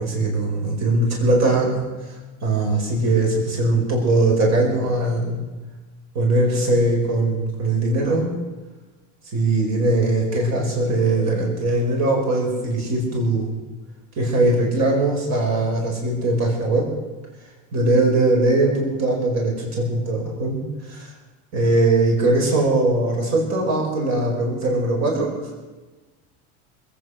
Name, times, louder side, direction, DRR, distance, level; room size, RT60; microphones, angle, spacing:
voice 1, 0.0-1.8 2.4-5.4 6.1-8.3 9.3-13.6 14.2-16.9 17.7-20.6 20.9-21.1 21.5-25.3, right 2 dB, 50° right, -1 dB, 4.9 m, -20 dB
21.0 x 9.1 x 6.3 m, 1.2 s
supercardioid pair, 110°, 36 cm